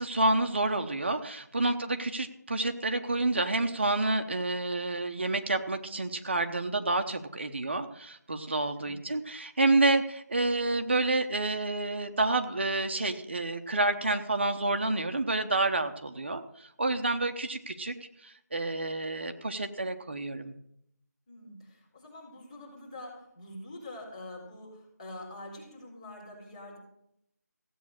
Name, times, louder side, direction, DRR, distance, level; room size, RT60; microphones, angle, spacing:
voice 1, 0.0-17.9 18.2-20.5, right 2 dB, 40° right, 7 dB, 1.0 m, -29 dB
voice 2, 21.3-26.8, left 1 dB, 20° left, -4 dB, 4.1 m, -45 dB
16.0 x 8.5 x 6.5 m, 0.75 s
figure-of-eight pair, 175°, 9 cm